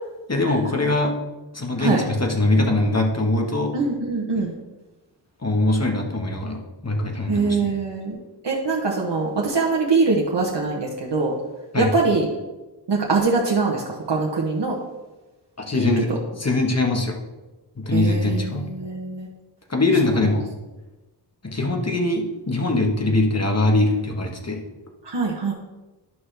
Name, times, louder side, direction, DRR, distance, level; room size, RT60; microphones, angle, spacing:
voice 1, 0.3-1.2 1.5-3.7 5.4-7.7 11.7-11.9 15.6-17.2 17.8-18.7 19.7-20.5 21.4-24.6, left 2 dB, 35° left, 2 dB, 1.3 m, -22 dB
voice 2, 3.7-4.5 7.3-8.2 8.4-11.4 11.8-12.3 12.9-14.8 15.7-16.0 17.9-19.3 20.1-20.2 25.0-25.5, right 3 dB, 75° right, -2 dB, 1.0 m, -23 dB
11.0 x 5.9 x 3.3 m, 1.1 s
wide cardioid pair, 65°, 42 cm